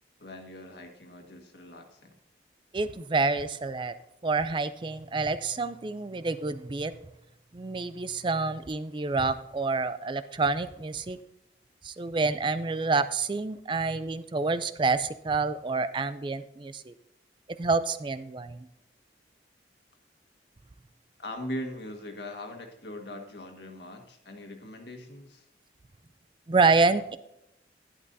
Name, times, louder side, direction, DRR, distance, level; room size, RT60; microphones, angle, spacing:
voice 1, 0.2-2.1 3.7-3.8 13.0-13.1 21.2-25.5, left 1 dB, 70° left, 3 dB, 1.7 m, -41 dB
voice 2, 2.7-3.9 4.2-6.9 7.5-11.2 11.8-16.9 17.6-18.7 26.5-27.2, right 4 dB, 25° right, 12 dB, 0.4 m, -28 dB
11.5 x 11.0 x 2.7 m, 0.84 s
head